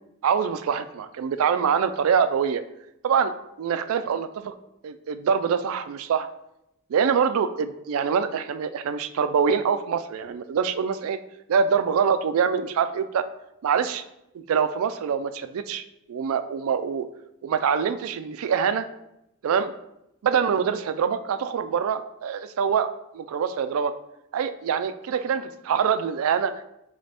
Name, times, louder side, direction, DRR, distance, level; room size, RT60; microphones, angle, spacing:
voice 1, 0.2-2.6 3.0-3.3 3.6-4.5 4.8-6.3 6.9-11.2 11.5-13.2 13.6-14.0 14.3-17.1 17.4-18.9 19.4-19.7 20.2-23.9 24.3-26.5, right 7 dB, 65° right, 11 dB, 0.3 m, -24 dB
3.3 x 3.3 x 4.1 m, 0.84 s
head